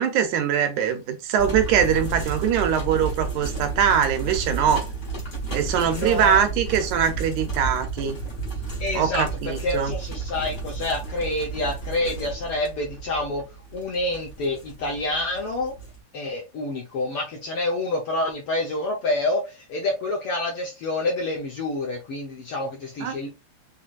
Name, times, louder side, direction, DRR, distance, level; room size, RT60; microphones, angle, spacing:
voice 1, 0.0-4.9 5.5-8.2 9.0-9.9 23.0-23.2, right 8 dB, 75° right, 2.1 m, -22 dB
sound 1, 1.4-16.0, right 4 dB, 45° left, 1.1 m, -32 dB
voice 2, 5.8-6.4 8.8-13.4 13.7-15.7 16.1-23.3, left 2 dB, 70° left, 1.4 m, -28 dB
5.7 x 3.2 x 2.4 m
omnidirectional pair, 3.6 m